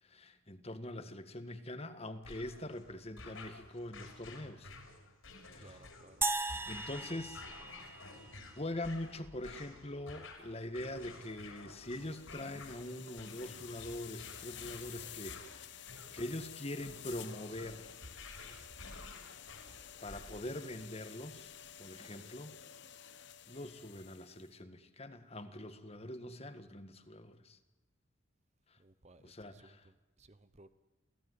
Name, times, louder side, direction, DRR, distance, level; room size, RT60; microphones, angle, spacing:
voice 1, 0.0-4.7 5.4-5.8 6.6-7.5 8.6-17.9 20.0-21.5 21.8-22.5 23.5-27.6 28.7-28.8 29.2-29.9, left 1 dB, 30° left, 10 dB, 1.7 m, -43 dB
sound 1, 2.2-20.6, left 3 dB, 70° left, 5.9 m, -52 dB
voice 2, 5.6-6.3 22.0-22.3 28.8-30.7, right 2 dB, 30° right, 12 dB, 1.0 m, -61 dB
sound 2, 6.2-8.6, right 3 dB, 10° right, 0.9 m, -37 dB
sound 3, 11.8-24.5, left 10 dB, 55° left, 1.0 m, -51 dB
28.0 x 17.0 x 9.7 m, 1.1 s
head